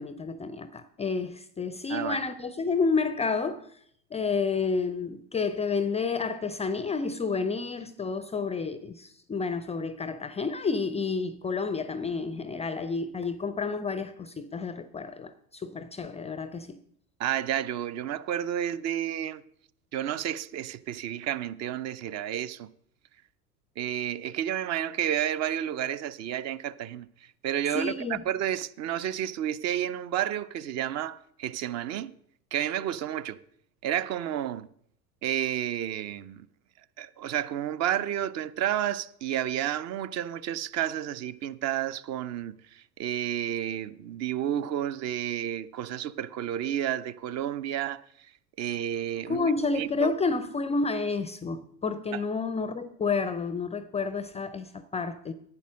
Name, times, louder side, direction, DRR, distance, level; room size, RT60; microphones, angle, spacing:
voice 1, 0.0-3.6 4.1-16.8 27.7-28.2 49.3-55.3, left 4 dB, 15° left, 0.4 m, -30 dB
voice 2, 17.2-19.4 19.9-22.7 23.8-27.1 27.4-32.1 32.5-33.4 33.8-34.7 35.2-36.5 37.0-48.0 48.6-50.1 52.1-52.2, right 11 dB, 35° right, 0.6 m, -31 dB
10.5 x 8.6 x 6.2 m
figure-of-eight pair, 80°, 47 cm